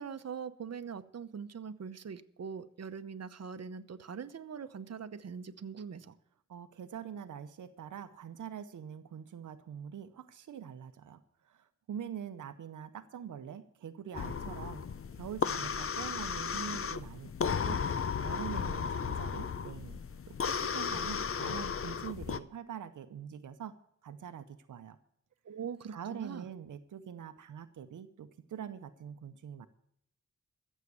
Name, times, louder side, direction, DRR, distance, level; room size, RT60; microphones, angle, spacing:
voice 1, 0.0-6.2 25.4-26.5, right 6 dB, 55° right, 1.0 m, -42 dB
voice 2, 6.5-14.9 15.1-17.8 18.2-20.0 20.3-23.7 24.0-25.0 25.9-29.7, right 8 dB, 90° right, 0.8 m, -44 dB
sound 1, 14.1-22.4, left 6 dB, 45° left, 0.7 m, -35 dB
14.5 x 7.5 x 6.9 m
cardioid pair, 65°, 30 cm